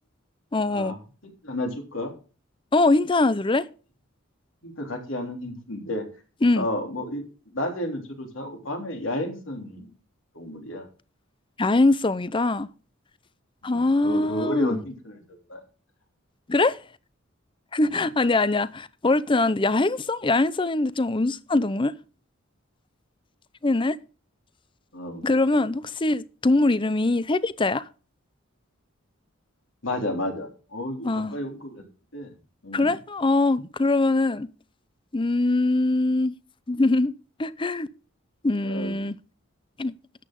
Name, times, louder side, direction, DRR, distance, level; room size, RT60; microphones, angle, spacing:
voice 1, 0.5-1.0 2.7-3.7 6.4-6.7 11.6-12.7 13.6-14.8 16.5-16.8 17.7-21.9 23.6-24.0 25.2-27.8 31.0-31.3 32.7-34.5 35.1-36.4 36.7-37.1 37.4-37.9 38.4-39.1 39.8-39.9, left 2 dB, 25° left, 0.6 m, -22 dB
voice 2, 1.2-2.1 4.6-6.0 6.5-7.2 7.5-9.9 10.3-10.9 13.6-15.2 15.5-15.6 17.8-18.1 24.9-25.3 29.8-31.8 32.1-32.3 32.6-33.0 38.6-39.0, left 1 dB, 70° left, 3.4 m, -32 dB
12.5 x 9.0 x 3.8 m
head